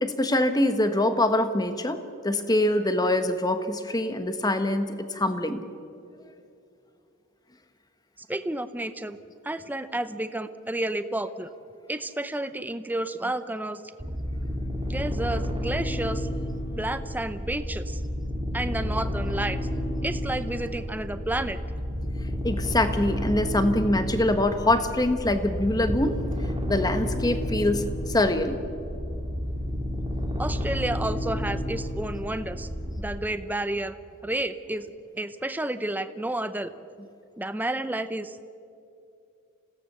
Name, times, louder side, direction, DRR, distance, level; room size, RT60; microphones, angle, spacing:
voice 1, 0.0-5.6 22.4-26.2 26.7-28.6, left 1 dB, 20° left, 9 dB, 1.2 m, -24 dB
voice 2, 8.2-9.2 9.4-11.5 11.9-13.8 14.9-16.3 16.7-18.0 18.5-19.6 20.0-21.6 30.4-32.7 33.0-34.0 34.2-36.7 37.4-38.4, right 1 dB, 10° right, 11 dB, 0.7 m, -31 dB
sound 1, 14.0-33.0, left 1 dB, 25° right, 2.2 m, -31 dB
27.0 x 17.0 x 6.8 m, 2.5 s
head